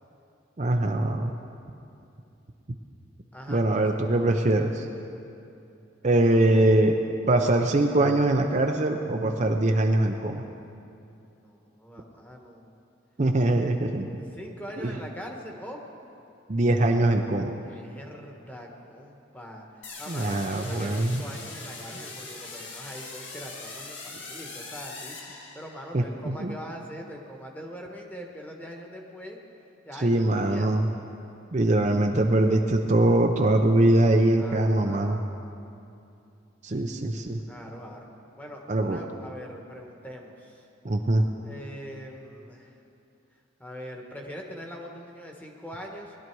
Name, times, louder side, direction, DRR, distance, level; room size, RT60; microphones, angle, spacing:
voice 1, 0.6-1.3 3.5-4.8 6.0-7.0 7.3-10.4 13.2-14.2 14.8-14.9 16.5-17.5 20.1-21.2 25.9-26.0 26.4-26.6 30.0-30.9 31.5-35.2 36.6-37.4 38.7-39.0 40.8-41.2, right 1 dB, 40° right, 3 dB, 0.6 m, -22 dB
voice 2, 3.3-3.9 11.4-12.7 14.2-15.8 17.6-29.4 29.8-30.7 34.3-35.3 37.5-38.1 38.4-40.7 41.4-42.8 43.6-46.2, equal, 10° left, 1 dB, 1.3 m, -42 dB
sound 1, 19.8-26.0, left 3 dB, 65° left, 1.9 m, -41 dB
20.0 x 11.5 x 4.7 m, 2.7 s
head